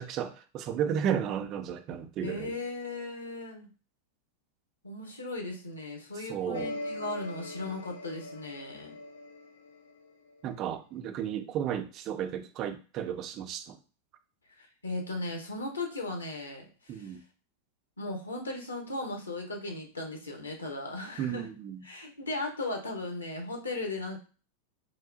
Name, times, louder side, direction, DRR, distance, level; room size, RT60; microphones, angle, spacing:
voice 1, 0.0-2.6 6.1-6.7 10.4-13.8 16.9-17.2 21.2-21.8, right 9 dB, 35° right, 0.4 m, -33 dB
voice 2, 2.2-3.7 4.8-8.9 14.6-16.6 16.9-17.1 18.0-21.5 21.8-24.2, left 2 dB, 80° left, 0.8 m, -37 dB
sound 1, 6.5-10.4, left 2 dB, 60° left, 0.4 m, -41 dB
3.2 x 2.3 x 2.5 m
figure-of-eight pair, 90°, 0 cm